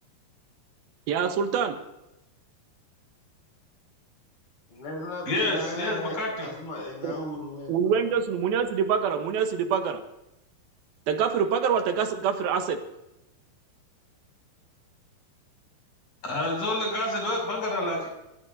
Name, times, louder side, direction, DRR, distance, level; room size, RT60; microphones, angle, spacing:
voice 1, 1.1-1.8 7.0-7.1 7.7-10.0 11.1-12.8, right 7 dB, 75° right, 6 dB, 2.9 m, -25 dB
voice 2, 4.7-8.0, left 2 dB, 85° left, -1 dB, 7.5 m, -36 dB
voice 3, 5.3-6.5 16.2-18.1, left 1 dB, 55° left, -1 dB, 7.9 m, -28 dB
27.0 x 15.0 x 2.7 m, 0.92 s
omnidirectional pair, 4.4 m